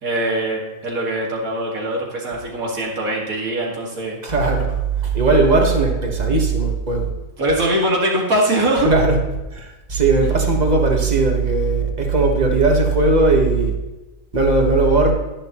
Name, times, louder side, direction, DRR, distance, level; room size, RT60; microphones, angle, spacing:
voice 1, 0.0-4.2 7.4-8.9, right 1 dB, 80° right, -2 dB, 2.5 m, -22 dB
voice 2, 4.2-4.8 5.0-7.1 8.8-9.2 9.5-13.7 14.3-15.1, right 3 dB, 30° right, 1 dB, 1.5 m, -17 dB
11.5 x 10.0 x 3.0 m, 1.1 s
omnidirectional pair, 1.5 m